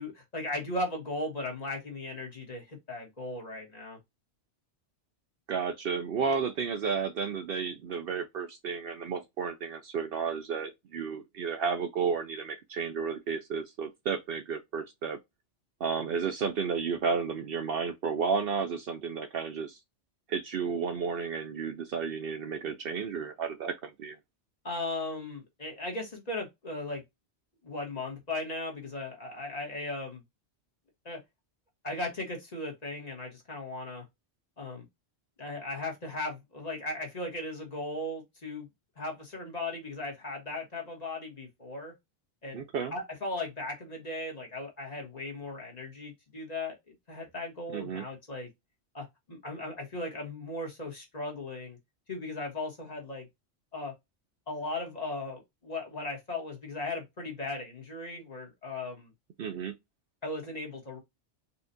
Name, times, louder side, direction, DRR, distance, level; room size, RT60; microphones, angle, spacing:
voice 1, 0.0-4.0 24.6-27.0 27.6-30.2 31.0-31.2 31.8-34.0 34.6-34.8 35.4-38.7 39.0-41.9 42.4-42.6 42.9-46.7 47.1-48.5 48.9-51.8 52.1-53.3 53.7-53.9 54.5-59.1 60.2-61.0, left 2 dB, 35° left, 1.3 m, -37 dB
voice 2, 5.5-15.2 15.8-19.8 20.3-24.2 42.5-42.9 47.7-48.0 59.4-59.7, right 6 dB, 60° right, 0.7 m, -32 dB
4.2 x 2.4 x 2.6 m
omnidirectional pair, 1.2 m